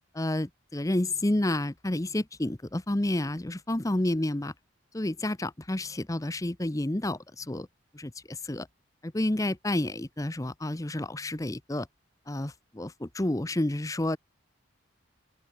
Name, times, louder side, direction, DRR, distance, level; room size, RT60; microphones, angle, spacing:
voice 1, 0.1-4.5 4.9-7.7 7.9-8.7 9.0-11.9 12.3-14.2, left 1 dB, 15° left, 0.7 m, -30 dB
open air
head